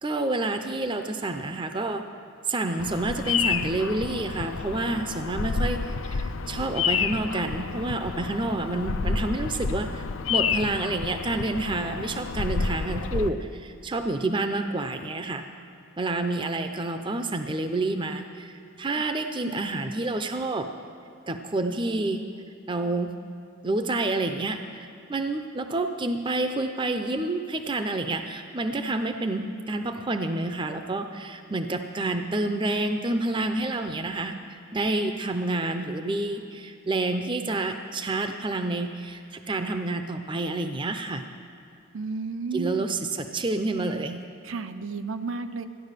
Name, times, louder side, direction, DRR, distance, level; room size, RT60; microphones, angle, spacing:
voice 1, 0.0-2.1 2.5-10.0 10.3-15.5 16.0-20.7 21.3-22.2 22.7-23.1 23.6-24.6 25.1-34.3 34.7-41.2 42.5-44.2, right 2 dB, 20° right, 7 dB, 0.6 m, -28 dB
Bird vocalization bird call bird song, 2.8-13.3, left 5 dB, 65° left, 0.5 m, -29 dB
voice 2, 41.9-42.8 44.4-45.7, right 4 dB, 65° right, 9 dB, 0.6 m, -32 dB
14.0 x 10.5 x 6.6 m, 2.5 s
head